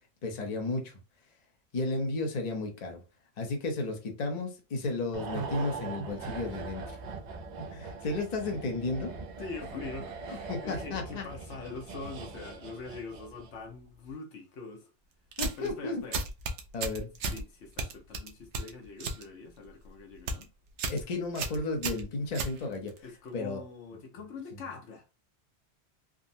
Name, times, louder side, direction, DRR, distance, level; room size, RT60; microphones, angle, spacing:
voice 1, 0.2-1.0 1.7-3.0 3.4-7.0 7.6-9.1 10.5-11.3 15.4-16.0 16.7-17.1 20.8-22.9 23.3-23.6, left 3 dB, 40° left, 0.8 m, -33 dB
sound 1, 5.1-13.7 13.9-14.1, right 4 dB, 55° right, 0.5 m, -41 dB
voice 2, 9.4-14.9 15.6-16.2 17.3-20.5 23.0-25.0, left 4 dB, 80° left, 1.1 m, -43 dB
sound 2, 15.3-15.7 16.1-17.4 17.8-19.2 19.6-19.9 20.1-20.4 20.8-21.0 21.3-23.0, right 3 dB, 80° right, 0.9 m, -34 dB
3.6 x 2.0 x 2.6 m
omnidirectional pair, 1.2 m